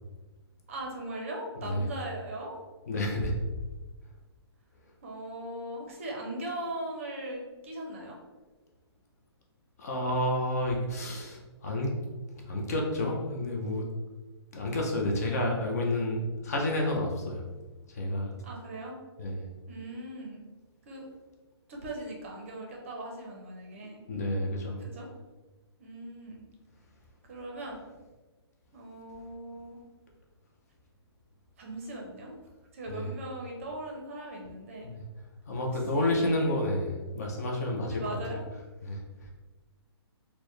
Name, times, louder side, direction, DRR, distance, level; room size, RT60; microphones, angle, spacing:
voice 1, 0.7-2.6 5.0-8.2 18.4-19.0 19.7-20.5 20.8-21.1 21.7-24.0 24.8-25.2 25.8-26.4 27.3-27.9 28.7-29.8 31.6-32.3 32.7-34.9 35.9-36.4 37.9-38.4, right 1 dB, 30° right, 0 dB, 0.6 m, -39 dB
voice 2, 2.9-3.4 9.8-11.9 12.5-13.8 14.5-17.4 17.9-18.3 19.2-19.4 23.8-24.8 32.9-33.1 34.8-35.0 35.5-38.2 38.8-39.3, left 1 dB, 35° left, 0 dB, 0.5 m, -30 dB
4.3 x 2.1 x 3.1 m, 1.2 s
hypercardioid pair, 170°, 14 cm